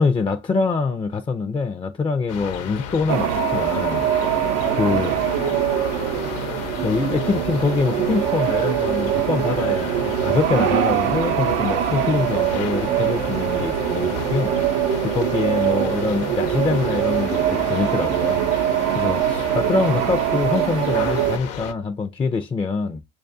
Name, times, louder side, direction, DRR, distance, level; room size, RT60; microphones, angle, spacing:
voice 1, 0.0-5.2 6.8-14.6 15.0-18.4 18.9-23.0, left 4 dB, 20° left, 0.4 m, -24 dB
sound 1, 2.3-21.7, left 8 dB, 60° left, 0.6 m, -33 dB
sound 2, 3.1-21.4, right 11 dB, 85° right, 0.5 m, -23 dB
6.3 x 2.4 x 2.5 m
supercardioid pair, 90°, 29 cm